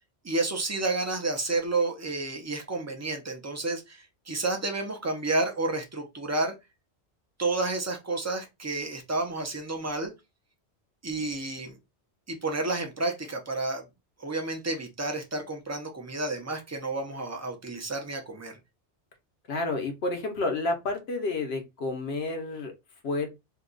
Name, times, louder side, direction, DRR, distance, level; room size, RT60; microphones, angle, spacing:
voice 1, 0.2-6.5 7.4-10.1 11.0-11.7 12.3-13.8 14.2-18.6, right 2 dB, 20° right, 0.5 m, -30 dB
voice 2, 19.5-22.7 23.0-23.3, left 3 dB, 65° left, 1.1 m, -30 dB
2.8 x 2.3 x 3.8 m
omnidirectional pair, 1.2 m